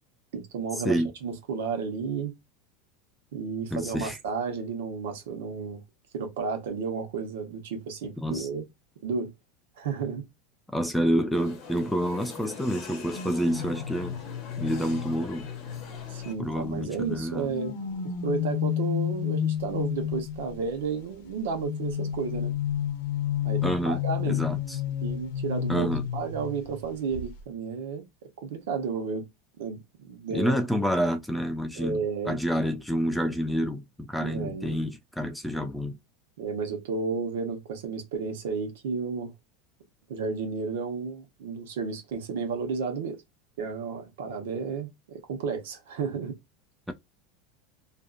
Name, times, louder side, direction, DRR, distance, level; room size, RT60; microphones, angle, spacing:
voice 1, 0.3-2.3 3.3-5.8 6.1-8.7 9.0-9.3 9.8-10.3 16.1-17.7 18.2-22.5 23.4-24.4 25.0-25.9 26.1-28.0 28.4-29.2 29.6-30.6 31.7-32.4 34.2-34.8 36.4-39.3 40.1-43.2 43.6-46.4, right 5 dB, 85° right, 0.9 m, -32 dB
voice 2, 3.7-4.2 8.2-8.5 10.7-14.2 14.6-15.5 16.4-17.5 23.6-24.0 24.3-24.8 25.7-26.0 30.3-36.0, equal, ahead, 0.3 m, -28 dB
sound 1, 11.3-16.3, left 5 dB, 35° left, 0.9 m, -44 dB
sound 2, 13.1-16.7 17.3-20.6 21.6-26.8 27.1-27.4, left 10 dB, 60° left, 0.6 m, -31 dB
2.5 x 2.4 x 2.3 m
supercardioid pair, 165°, 0 cm